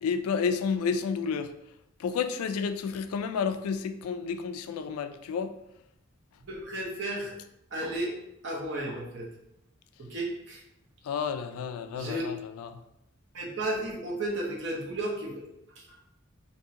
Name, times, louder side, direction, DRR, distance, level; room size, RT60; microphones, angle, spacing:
voice 1, 0.0-1.5 2.0-5.5 11.0-12.8, left 6 dB, 90° left, 0.3 m, -31 dB
voice 2, 6.5-7.3 7.7-8.1 8.4-9.3 10.0-10.6 11.9-12.3 13.3-15.5 15.9-16.0, right 1 dB, 55° right, 0.8 m, -33 dB
3.6 x 2.6 x 2.8 m
head